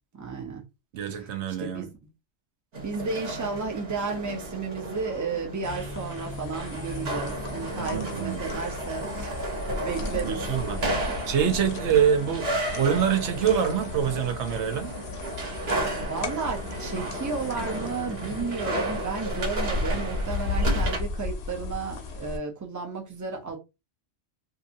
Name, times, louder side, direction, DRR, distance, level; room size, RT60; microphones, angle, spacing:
voice 1, 0.1-0.6 1.1-1.3 1.6-1.9 2.8-10.4 10.8-11.1 16.0-23.6, right 4 dB, 20° right, 0.5 m, -33 dB
voice 2, 0.9-1.9 7.8-8.4 10.2-14.9, right 8 dB, 75° right, 0.9 m, -26 dB
sound 1, 2.7-21.0, right 1 dB, 60° right, 1.2 m, -33 dB
sound 2, 5.6-22.4, left 2 dB, 65° left, 0.9 m, -34 dB
2.7 x 2.6 x 2.5 m
omnidirectional pair, 1.2 m